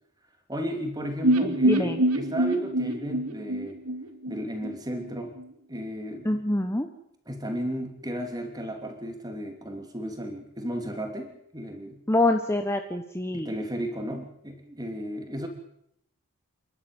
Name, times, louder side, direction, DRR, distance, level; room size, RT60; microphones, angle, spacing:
voice 1, 0.5-3.8 4.3-5.4 5.7-6.4 7.3-12.0 13.3-15.5, equal, 15° right, 5 dB, 3.0 m, -34 dB
sound 1, 1.2-5.1 5.4-5.5 5.8-5.9, right 1 dB, 85° right, 2.7 m, -25 dB
voice 2, 1.4-2.0 6.2-6.9 12.1-13.5, left 1 dB, 10° left, 6 dB, 1.1 m, -26 dB
27.5 x 12.0 x 9.1 m, 0.77 s
head